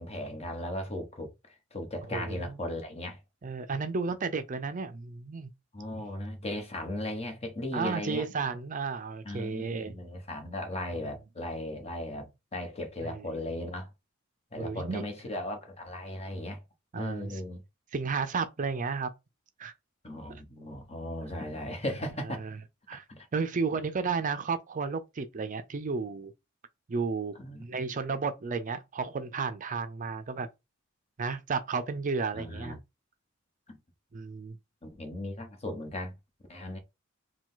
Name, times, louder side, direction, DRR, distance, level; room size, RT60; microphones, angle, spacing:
voice 1, 0.0-3.2 5.7-8.2 9.2-13.9 14.5-16.6 16.9-17.6 20.0-22.4 22.9-23.3 27.3-27.6 32.3-32.8 33.7-33.8 34.8-36.1 36.5-36.8, left 1 dB, 30° left, 1.2 m, -37 dB
voice 2, 2.1-2.6 3.4-5.5 7.7-9.9 13.0-13.3 14.6-15.0 16.9-17.4 17.9-19.1 19.6-19.7 20.3-20.4 22.4-22.6 22.9-23.0 23.3-26.3 26.9-27.3 27.6-30.5 31.2-32.8 34.1-34.6, right 4 dB, 40° right, 0.5 m, -33 dB
4.8 x 2.3 x 3.8 m
head